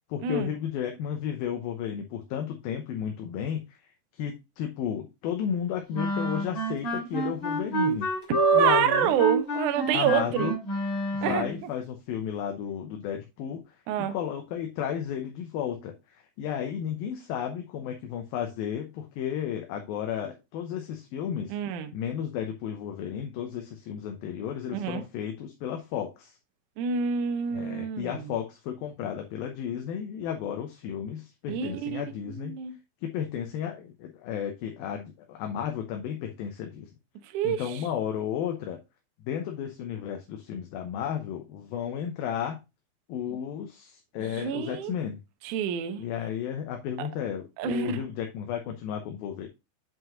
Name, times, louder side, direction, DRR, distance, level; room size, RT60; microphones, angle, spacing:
voice 1, 0.1-3.8 4.2-8.1 8.5-9.2 9.9-10.5 11.1-13.6 14.0-15.9 16.4-21.5 21.9-26.4 27.5-32.6 33.0-36.9 37.4-38.8 39.2-42.6 43.1-45.2 46.0-49.5, left 9 dB, 70° left, 2.5 m, -33 dB
sound 1, 5.9-11.6, equal, 30° left, 3.3 m, -29 dB
voice 2, 8.3-10.5 11.2-11.7 13.9-14.2 21.5-21.9 24.7-25.0 26.8-28.3 31.5-32.8 37.3-37.8 44.2-44.9 45.4-46.1 47.0-47.1 47.6-48.0, right 8 dB, 75° right, 1.8 m, -27 dB
7.8 x 5.3 x 3.8 m
omnidirectional pair, 4.7 m